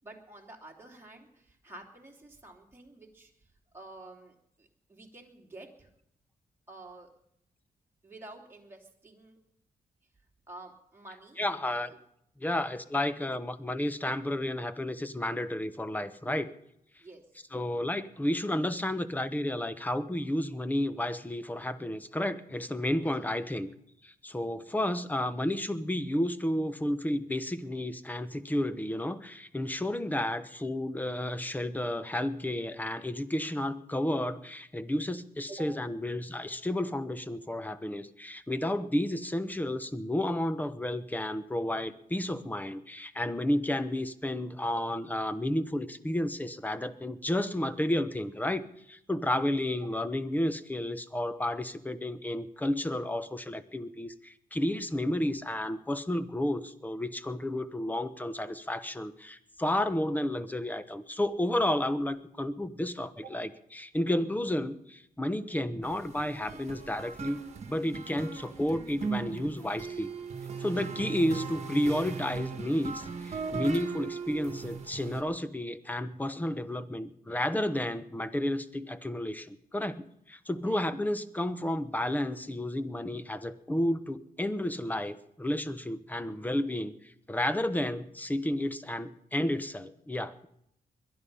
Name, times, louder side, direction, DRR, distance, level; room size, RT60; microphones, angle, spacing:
voice 1, 0.0-3.5 3.7-5.9 6.7-7.1 8.0-9.4 10.5-11.4 12.4-12.6 17.0-17.2 24.3-24.5 35.5-35.7 44.7-44.8 63.2-63.3 80.6-80.8, right 2 dB, 15° right, -1 dB, 3.1 m, -49 dB
voice 2, 11.4-11.9 12.4-16.5 17.5-23.7 24.0-63.5 63.8-67.4 67.7-70.1 70.6-90.5, left 1 dB, 10° left, 13 dB, 0.9 m, -31 dB
sound 1, 65.8-75.2, right 5 dB, 45° right, 1.5 m, -39 dB
21.5 x 11.5 x 5.5 m, 0.76 s
cardioid pair, 110°, 15 cm